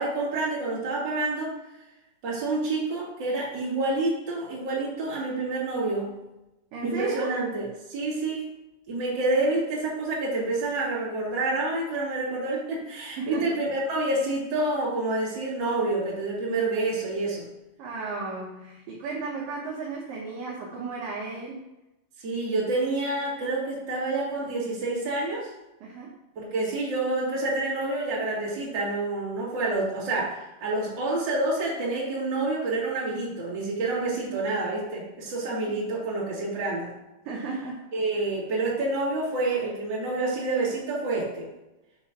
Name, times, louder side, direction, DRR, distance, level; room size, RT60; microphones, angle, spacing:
voice 1, 0.0-1.5 2.2-6.2 6.8-8.4 8.9-17.5 22.2-25.5 26.4-36.9 37.9-41.5, right 2 dB, 35° right, -6 dB, 2.0 m, -28 dB
voice 2, 6.7-7.4 13.2-13.6 17.8-21.7 25.8-26.2 35.7-35.8 37.3-37.8 38.2-38.3, right 4 dB, 70° right, -4 dB, 2.2 m, -34 dB
7.2 x 3.7 x 5.8 m, 0.97 s
omnidirectional pair, 5.3 m